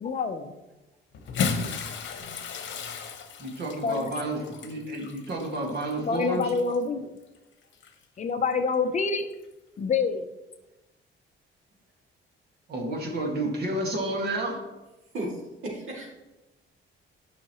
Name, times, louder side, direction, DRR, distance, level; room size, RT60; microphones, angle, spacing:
voice 1, 0.0-0.5 3.8-4.1 6.1-7.1 8.2-9.3 9.8-10.2, left 4 dB, 35° left, 7 dB, 0.5 m, -26 dB
Bathtub (filling or washing) / Splash splatter, 1.1-6.8 7.7-7.9 9.3-9.4, left 5 dB, 60° left, 1.0 m, -34 dB
voice 2, 3.4-6.5 12.7-14.6, right 1 dB, 50° right, 0 dB, 1.9 m, -30 dB
voice 3, 15.1-16.1, right 1 dB, 70° right, -2 dB, 2.4 m, -34 dB
11.5 x 5.6 x 3.0 m, 1.1 s
cardioid pair, 155°, 21 cm